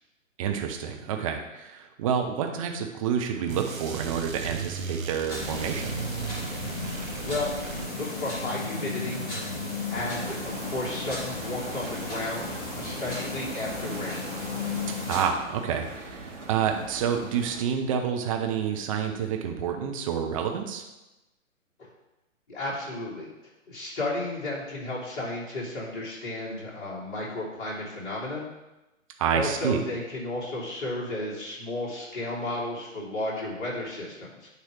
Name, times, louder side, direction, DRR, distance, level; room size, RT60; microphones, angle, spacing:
voice 1, 0.4-6.0 15.1-20.8 29.2-29.8, right 7 dB, 25° right, 3 dB, 0.8 m, -28 dB
sound 1, 3.5-8.3, right 5 dB, 80° right, 0.9 m, -36 dB
sound 2, 5.3-15.3, left 2 dB, 20° left, 2.0 m, -34 dB
voice 2, 7.2-9.2 9.9-14.3 21.8-21.9 22.5-23.3 23.7-28.4 29.3-34.5, left 2 dB, 40° left, -5 dB, 3.0 m, -33 dB
sound 3, 10.1-17.6, right 2 dB, 65° right, 2.0 m, -42 dB
9.6 x 3.2 x 6.2 m, 0.99 s
figure-of-eight pair, 125°, 40 cm